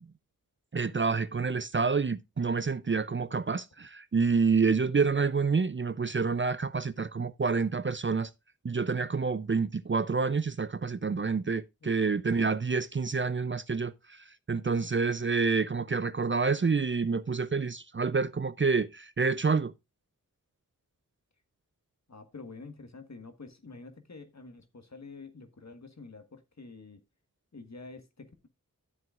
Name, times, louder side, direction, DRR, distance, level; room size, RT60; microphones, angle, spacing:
voice 1, 0.7-8.3 8.6-19.7, right 4 dB, 35° right, 0.5 m, -28 dB
voice 2, 11.8-12.2 22.1-27.0 27.5-28.5, left 3 dB, 55° left, 1.6 m, -48 dB
12.5 x 7.6 x 2.5 m
wide cardioid pair, 50°, 34 cm